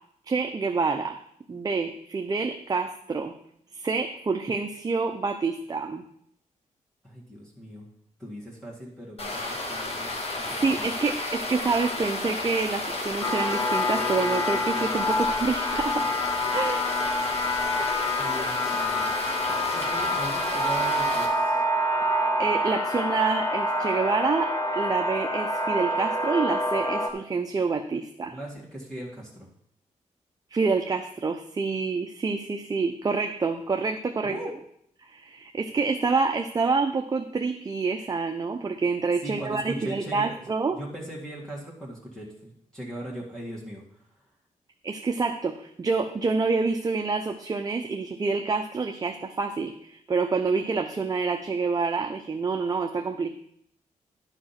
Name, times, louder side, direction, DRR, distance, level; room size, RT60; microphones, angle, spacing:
voice 1, 0.3-1.2 1.5-3.3 3.7-6.0 9.4-9.6 10.5-16.1 16.5-16.9 22.4-28.4 30.5-34.4 35.1-40.8 44.8-53.3, right 4 dB, 30° right, 4 dB, 0.6 m, -27 dB
voice 2, 7.0-7.9 8.2-10.9 18.2-19.2 19.7-21.6 28.3-29.5 34.2-34.6 39.2-40.4 40.7-43.8, right 1 dB, 5° left, -5 dB, 1.9 m, -39 dB
sound 1, 9.2-21.3, left 2 dB, 50° left, 1.8 m, -32 dB
sound 2, 13.2-27.1, left 1 dB, 25° left, 1.0 m, -27 dB
11.5 x 5.0 x 5.8 m, 0.69 s
wide cardioid pair, 150°, 13 cm